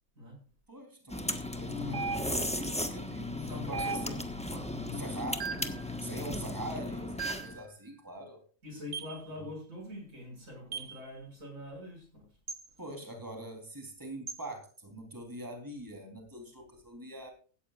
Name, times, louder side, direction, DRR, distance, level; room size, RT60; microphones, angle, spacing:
voice 1, 0.7-4.2 4.9-5.6 6.0-8.4 12.8-17.3, right 1 dB, 15° right, 3 dB, 3.7 m, -43 dB
sound 1, 1.1-7.6, left 1 dB, 5° left, 1.3 m, -36 dB
voice 2, 1.6-2.2 3.3-6.0 8.6-12.3, left 2 dB, 90° right, 2 dB, 7.1 m, -44 dB
sound 2, 1.9-2.6 3.7-4.4 5.4-5.8 7.2-7.6 8.9-9.2 10.7-11.0 12.5-12.7 14.3-14.5, right 5 dB, 65° right, 1.5 m, -37 dB
17.0 x 14.0 x 2.5 m, 0.39 s
omnidirectional pair, 1.4 m